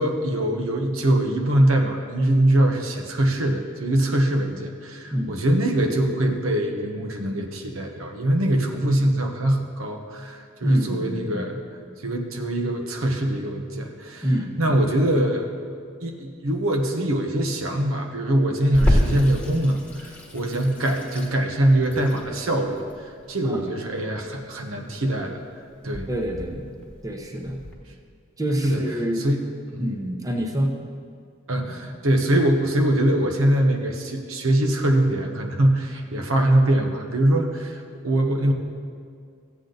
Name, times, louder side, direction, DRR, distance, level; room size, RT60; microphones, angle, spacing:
voice 1, 0.0-11.6 12.0-14.2 14.6-15.5 16.0-25.4 25.8-26.1 28.6-28.8 29.2-29.4 29.7-29.9 31.5-38.5, right 1 dB, 85° right, 3 dB, 1.1 m, -23 dB
voice 2, 5.1-5.4 10.6-11.5 14.2-15.1 23.4-23.7 26.1-27.6 28.4-29.3 29.8-30.7, equal, 15° right, 1 dB, 0.9 m, -26 dB
Water tap faucet / Sink (filling or washing), 18.7-27.7, equal, 5° left, 1.3 m, -29 dB
14.5 x 8.4 x 4.0 m, 2.2 s
head